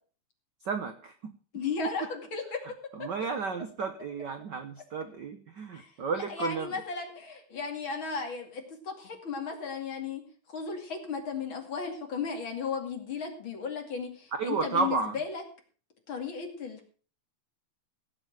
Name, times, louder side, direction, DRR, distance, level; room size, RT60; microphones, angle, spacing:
voice 1, 0.6-1.3 2.9-6.7 14.4-15.2, right 5 dB, 70° right, 8 dB, 1.0 m, -32 dB
voice 2, 1.5-2.6 3.0-3.1 5.7-5.9 6.2-10.2 10.5-15.4 16.1-16.9, left 5 dB, 45° left, 3 dB, 3.0 m, -35 dB
17.0 x 7.8 x 6.1 m, 0.39 s
omnidirectional pair, 3.5 m